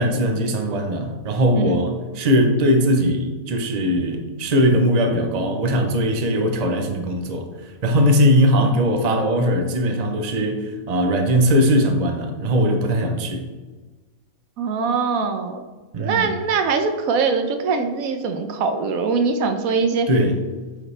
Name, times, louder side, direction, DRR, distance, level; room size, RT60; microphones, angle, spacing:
voice 1, 0.0-13.4 15.9-16.3 20.1-20.4, equal, 35° right, 5 dB, 0.7 m, -20 dB
voice 2, 14.6-15.6 16.0-20.1, right 5 dB, 90° right, 7 dB, 1.2 m, -22 dB
8.2 x 5.1 x 3.3 m, 1.3 s
omnidirectional pair, 1.4 m